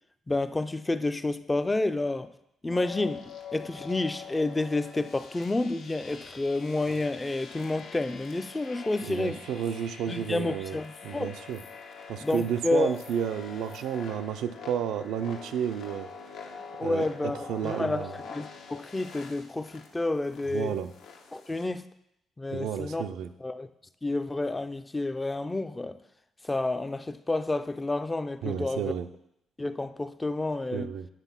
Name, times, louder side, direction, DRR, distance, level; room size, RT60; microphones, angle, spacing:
voice 1, 0.3-2.3 2.6-9.4 10.1-11.3 12.2-13.0 16.8-20.8 21.3-21.9 22.4-23.1 23.4-23.7 24.0-26.0 26.4-28.9 29.6-30.9, left 2 dB, 15° left, 0.4 m, -30 dB
sound 1, 2.7-21.7, left 5 dB, 85° left, 1.0 m, -45 dB
voice 2, 9.0-10.8 11.0-11.6 12.1-16.1 16.8-18.2 20.5-20.9 22.5-23.3 28.4-29.1 30.7-31.1, right 8 dB, 85° right, 0.4 m, -32 dB
9.1 x 3.8 x 5.7 m
cardioid pair, 105°, 0 cm